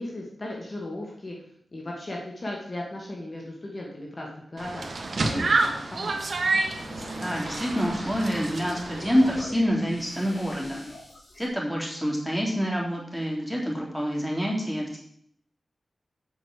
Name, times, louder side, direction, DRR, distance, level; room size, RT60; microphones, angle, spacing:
voice 1, 0.0-1.4 1.7-4.9 5.2-6.4, left 1 dB, 35° left, -2 dB, 2.2 m, -36 dB
sound 1, 4.6-9.4, right 3 dB, 60° right, 1.5 m, -29 dB
sound 2, 6.5-11.5, left 1 dB, 65° left, 3.9 m, -42 dB
voice 2, 7.2-10.8 11.4-15.0, equal, ahead, -3 dB, 3.4 m, -27 dB
8.3 x 5.9 x 7.5 m, 0.66 s
wide cardioid pair, 90°, 0 cm